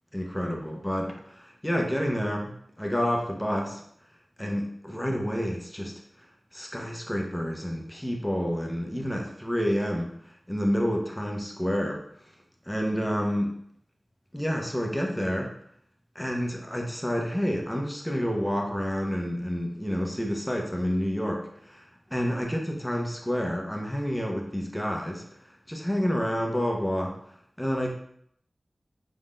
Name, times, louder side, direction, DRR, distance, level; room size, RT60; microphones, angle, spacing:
voice 1, 0.1-3.8 4.4-5.9 6.5-10.2 10.5-12.0 12.7-13.5 14.3-15.5 16.1-21.8 22.1-25.2 25.7-27.2 27.6-27.9, equal, 10° left, 1 dB, 0.9 m, -29 dB
4.2 x 3.8 x 2.6 m, 0.68 s
cardioid pair, 40°, 0 cm